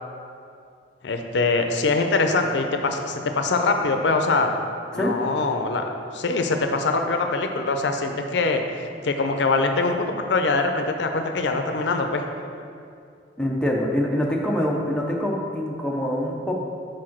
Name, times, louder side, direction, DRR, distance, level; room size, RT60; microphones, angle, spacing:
voice 1, 1.0-4.5 4.9-5.8 6.1-8.6 9.0-12.2, left 3 dB, 80° left, 5 dB, 0.5 m, -23 dB
voice 2, 13.4-16.5, left 1 dB, 5° left, -2 dB, 0.6 m, -25 dB
4.8 x 4.6 x 5.9 m, 2.4 s
head